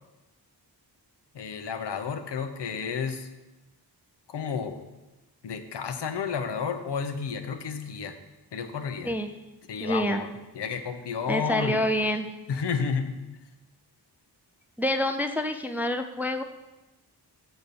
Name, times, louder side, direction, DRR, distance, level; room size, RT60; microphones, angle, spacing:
voice 1, 1.3-3.3 4.3-4.8 5.4-8.1 8.5-9.1 9.7-11.8 12.5-13.1, left 6 dB, 80° left, 7 dB, 0.8 m, -31 dB
voice 2, 9.8-10.2 11.3-12.3 14.8-16.4, left 1 dB, 5° right, 7 dB, 0.3 m, -27 dB
7.8 x 4.1 x 6.8 m, 1.0 s
wide cardioid pair, 130°, 41 cm